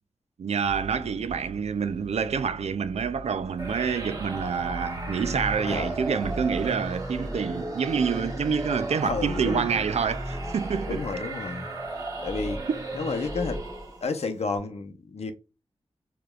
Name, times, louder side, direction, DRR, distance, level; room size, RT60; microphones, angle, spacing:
voice 1, 0.4-11.0, right 6 dB, 75° right, 0.4 m, -27 dB
sound 1, 0.6-6.7, right 3 dB, 5° right, 0.9 m, -42 dB
sound 2, 3.6-14.2, right 1 dB, 35° right, 1.4 m, -34 dB
voice 2, 5.6-6.0 9.0-9.7 10.9-11.7 12.2-12.6 12.9-13.6 14.0-15.3, left 4 dB, 70° left, 0.7 m, -31 dB
4.9 x 3.0 x 2.4 m
cardioid pair, 60°, 11 cm